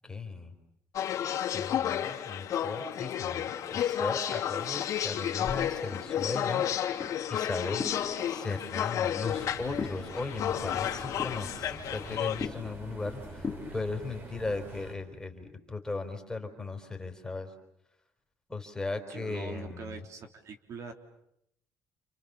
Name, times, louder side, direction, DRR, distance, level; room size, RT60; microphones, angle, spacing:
voice 1, 0.0-0.5 1.5-7.8 8.3-17.5 18.5-20.0, left 3 dB, 10° left, 4 dB, 4.2 m, -37 dB
sound 1, 0.9-12.5, left 10 dB, 60° left, 3.1 m, -32 dB
sound 2, 5.4-13.8, left 5 dB, 30° left, 2.9 m, -42 dB
sound 3, 9.3-15.0, right 2 dB, 35° right, 5.1 m, -46 dB
voice 2, 19.1-20.9, right 5 dB, 55° right, 5 dB, 3.4 m, -43 dB
29.5 x 29.0 x 7.0 m, 0.77 s
cardioid pair, 130°, 6 cm